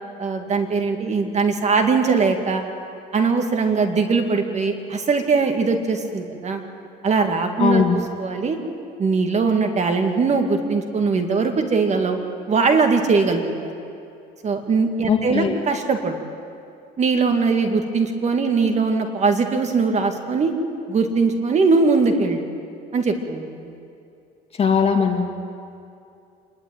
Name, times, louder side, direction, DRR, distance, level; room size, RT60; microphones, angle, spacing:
voice 1, 0.2-2.6 3.1-6.6 7.0-7.8 8.2-8.6 9.0-12.2 12.5-13.7 14.4-16.2 17.0-20.5 20.9-22.5 22.9-23.7, right 4 dB, 40° right, 5 dB, 2.1 m, -21 dB
voice 2, 7.6-7.9 15.1-15.5 24.6-25.2, left 6 dB, 35° left, 3 dB, 2.5 m, -19 dB
26.0 x 11.5 x 9.1 m, 2.6 s
cardioid pair, 110°, 17 cm